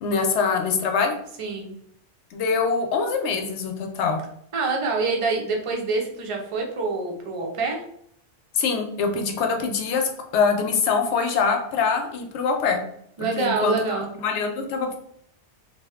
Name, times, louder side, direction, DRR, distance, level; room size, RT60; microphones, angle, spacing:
voice 1, 0.0-1.2 2.3-4.2 8.5-12.8 13.2-15.0, left 5 dB, 70° left, 4 dB, 0.8 m, -24 dB
voice 2, 1.4-1.8 4.5-7.8 13.2-14.1, right 3 dB, 60° right, 1 dB, 0.3 m, -26 dB
2.7 x 2.0 x 3.4 m, 0.70 s
omnidirectional pair, 1.2 m